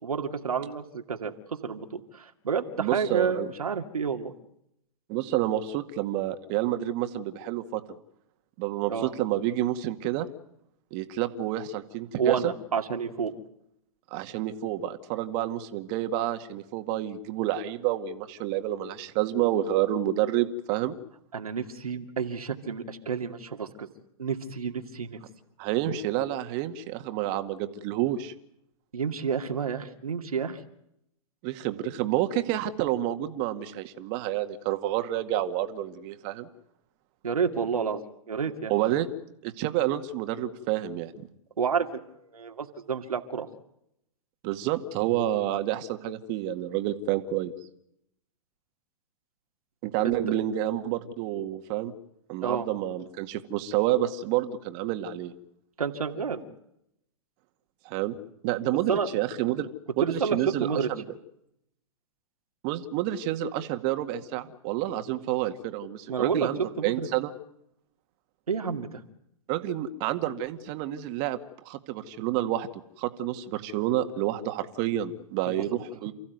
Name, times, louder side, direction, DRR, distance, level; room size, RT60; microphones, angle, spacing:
voice 1, 0.0-4.3 8.9-9.1 12.2-13.3 21.3-23.9 24.2-25.2 28.9-30.6 37.2-38.7 41.6-43.5 50.0-50.2 52.4-52.7 55.8-56.4 58.9-59.1 60.0-60.9 66.1-67.1 68.5-69.0 75.5-75.6, right 6 dB, 90° right, 5 dB, 2.4 m, -30 dB
voice 2, 2.8-3.5 5.1-8.0 8.6-10.3 10.9-12.5 14.1-21.0 25.6-28.3 31.4-36.5 38.7-39.1 39.4-41.1 44.4-47.5 49.8-51.9 52.3-55.3 57.9-58.2 58.4-59.7 60.0-61.0 62.6-67.3 69.5-71.4 71.7-72.7 73.0-76.1, right 13 dB, 40° right, 8 dB, 2.0 m, -29 dB
29.0 x 15.5 x 9.4 m, 0.79 s
hypercardioid pair, 120°, 18 cm